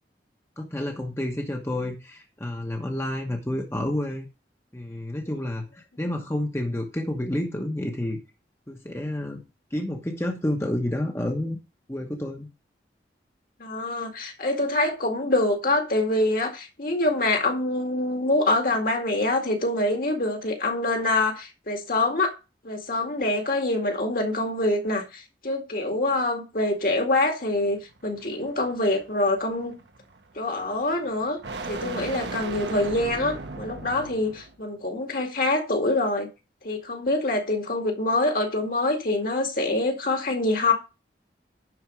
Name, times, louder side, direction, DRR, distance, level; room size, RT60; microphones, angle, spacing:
voice 1, 0.6-4.3 4.7-8.2 8.7-9.4 9.7-11.6 11.9-12.5, left 1 dB, 15° left, 1.1 m, -29 dB
voice 2, 13.6-22.3 22.6-29.8 30.3-31.4 31.7-36.3 36.6-40.7, left 2 dB, 50° left, 2.1 m, -25 dB
sound 1, 27.6-34.6, right 3 dB, 80° right, 1.2 m, -38 dB
11.0 x 4.4 x 6.1 m
head